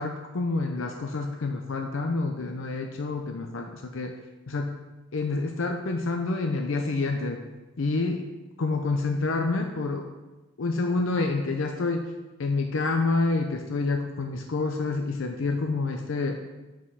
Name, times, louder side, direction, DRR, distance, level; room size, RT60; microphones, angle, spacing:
voice 1, 0.0-4.1 4.5-4.8 5.1-7.4 7.8-8.3 8.6-10.1 10.6-12.1 12.4-16.4, left 3 dB, 70° left, 4 dB, 0.6 m, -28 dB
5.6 x 5.0 x 6.3 m, 1.1 s
head